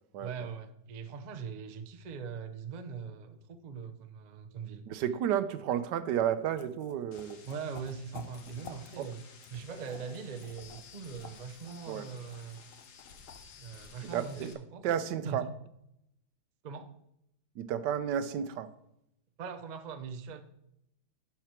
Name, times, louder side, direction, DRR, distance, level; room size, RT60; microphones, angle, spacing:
voice 1, 0.2-4.9 7.4-9.2 9.5-12.6 13.6-14.8 15.2-15.5 16.6-16.9 19.4-20.4, right 6 dB, 50° right, 0.5 m, -41 dB
voice 2, 4.9-7.4 9.0-9.1 11.9-12.1 14.1-14.5 14.8-15.4 17.6-18.7, right 9 dB, 90° right, 1.3 m, -32 dB
sound 1, 6.3-6.4 6.6-9.1 9.4-13.5, left 6 dB, 55° left, 0.7 m, -51 dB
sound 2, 7.1-14.5, left 6 dB, 70° left, 1.6 m, -54 dB
11.5 x 4.6 x 4.5 m
omnidirectional pair, 1.8 m